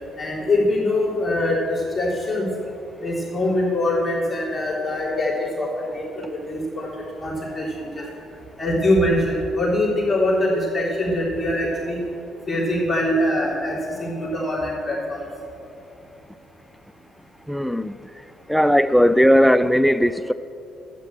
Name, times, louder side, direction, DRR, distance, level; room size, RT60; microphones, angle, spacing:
voice 1, 0.2-2.5 3.0-6.9 7.2-8.1 8.6-12.0 12.5-15.2, left 1 dB, 20° left, -4 dB, 3.4 m, -23 dB
voice 2, 17.5-18.0 18.5-20.3, equal, ahead, 15 dB, 0.4 m, -17 dB
12.5 x 8.7 x 7.7 m, 2.9 s
figure-of-eight pair, 45°, 0 cm